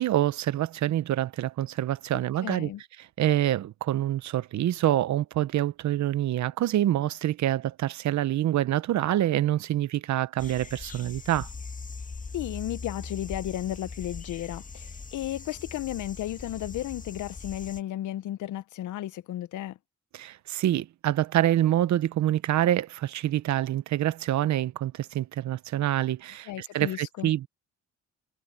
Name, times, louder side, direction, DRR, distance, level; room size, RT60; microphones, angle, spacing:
voice 1, 0.0-2.7 3.2-11.5 20.1-27.5, right 13 dB, 70° right, 0.9 m, -26 dB
voice 2, 2.1-2.8 12.3-19.8 26.5-27.3, left 13 dB, 75° left, 0.9 m, -34 dB
sound 1, 10.4-17.8, left 4 dB, 25° left, 1.7 m, -41 dB
cardioid pair, 90°, 30 cm